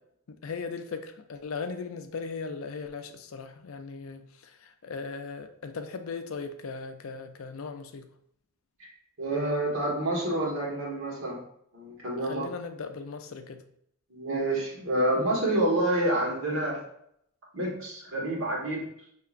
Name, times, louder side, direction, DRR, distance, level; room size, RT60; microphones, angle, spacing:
voice 1, 0.3-8.1 12.2-13.6, left 4 dB, 70° left, 8 dB, 0.5 m, -38 dB
voice 2, 9.2-11.4 11.7-12.5 14.1-16.8 17.5-18.8, right 1 dB, 65° right, -3 dB, 1.5 m, -28 dB
5.7 x 2.8 x 2.5 m, 0.70 s
head